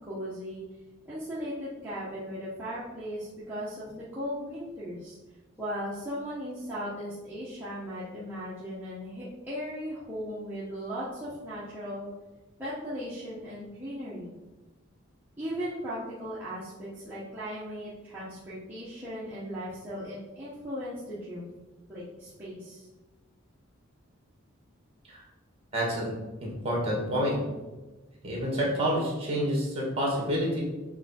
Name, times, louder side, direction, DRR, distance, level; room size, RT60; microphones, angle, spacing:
voice 1, 0.1-0.6 1.0-5.2 5.6-12.1 12.6-14.3 15.4-21.5 21.9-22.9, equal, 10° right, -11 dB, 1.2 m, -37 dB
voice 2, 25.7-26.1 26.4-27.4 28.2-30.6, equal, 30° right, -3 dB, 2.0 m, -28 dB
7.0 x 3.6 x 4.3 m, 1.1 s
head